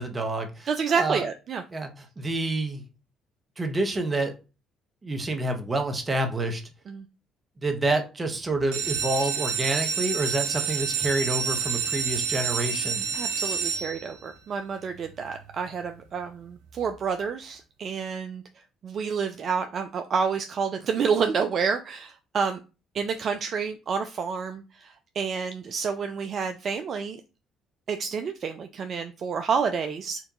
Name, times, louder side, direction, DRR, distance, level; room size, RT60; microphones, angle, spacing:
voice 1, 0.0-0.7 0.9-1.2 1.7-2.8 3.6-4.3 5.0-6.6 7.6-13.1, right 2 dB, 30° right, 5 dB, 1.2 m, -28 dB
voice 2, 0.7-1.6 6.9-7.0 13.1-18.4 18.8-22.6 22.9-27.2 27.9-30.2, right 6 dB, 55° right, 7 dB, 0.4 m, -29 dB
sound 1, 8.6-14.3 15.0-15.4 15.8-15.9 16.2-16.3 16.7-16.8, right 6 dB, 85° right, 0.7 m, -29 dB
4.4 x 2.6 x 3.8 m, 0.31 s
hypercardioid pair, 50°, 0 cm